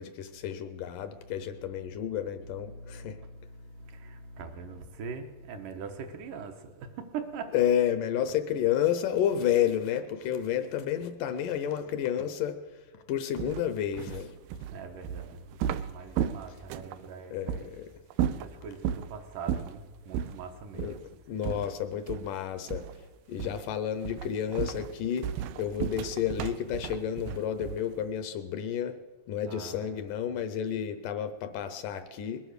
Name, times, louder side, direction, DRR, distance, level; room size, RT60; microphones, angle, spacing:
voice 1, 0.0-3.1 7.5-12.6 13.1-14.3 17.3-17.9 20.7-22.8 23.3-25.3 25.6-28.9 29.3-32.4, left 9 dB, 75° left, 2.1 m, -30 dB
voice 2, 2.4-7.6 14.7-15.6 15.9-17.7 18.4-21.0 29.5-30.2, right 5 dB, 70° right, 2.4 m, -42 dB
sound 1, 13.4-17.0 17.5-17.7 18.1-19.1 19.5-19.8 20.1-20.4 20.8-21.0 21.4-22.4 22.7-23.0 23.4-23.7 24.0-28.0, right 9 dB, 90° right, 2.5 m, -34 dB
21.0 x 10.0 x 6.6 m
omnidirectional pair, 4.2 m